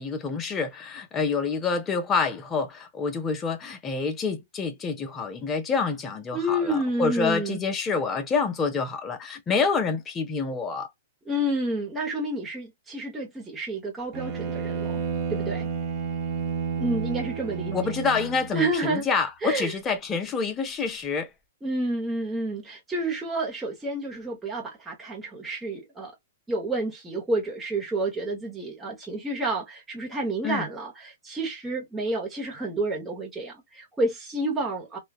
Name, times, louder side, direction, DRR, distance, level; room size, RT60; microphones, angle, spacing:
voice 1, 0.0-10.9 17.7-21.3 30.4-30.7, left 5 dB, 20° left, 0.7 m, -27 dB
voice 2, 6.3-7.6 11.3-15.0 15.3-15.7 16.8-17.7 18.5-19.0 19.4-19.7 21.6-26.1 26.5-35.0, right 1 dB, 10° right, 1.0 m, -29 dB
Bowed string instrument, 14.1-18.6, right 6 dB, 35° right, 1.1 m, -30 dB
3.0 x 2.3 x 2.3 m
hypercardioid pair, 135°, 0 cm